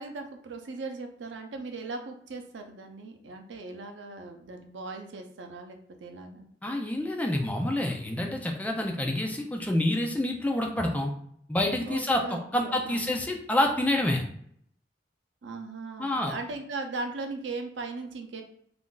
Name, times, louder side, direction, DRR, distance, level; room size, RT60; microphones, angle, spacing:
voice 1, 0.0-6.5 8.2-8.3 11.8-13.2 15.4-18.4, right 3 dB, 85° right, 4 dB, 0.5 m, -38 dB
voice 2, 6.6-11.1 11.5-14.2 16.0-16.3, left 1 dB, 10° left, 2 dB, 0.4 m, -27 dB
2.5 x 2.3 x 3.7 m, 0.67 s
head